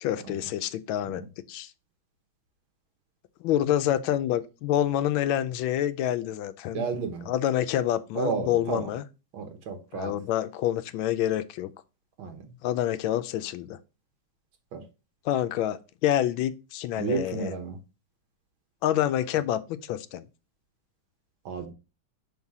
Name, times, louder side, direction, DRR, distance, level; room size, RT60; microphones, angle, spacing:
voice 1, 0.0-1.7 3.4-6.9 7.2-9.0 9.9-11.7 12.6-13.8 15.2-17.6 18.8-20.3, left 12 dB, 85° left, 1.4 m, -27 dB
voice 2, 6.7-7.3 8.2-8.8 9.3-10.1 12.2-12.4 14.7-14.8 17.0-17.8 21.5-21.7, right 5 dB, 85° right, 1.9 m, -31 dB
5.6 x 4.2 x 4.7 m
omnidirectional pair, 2.1 m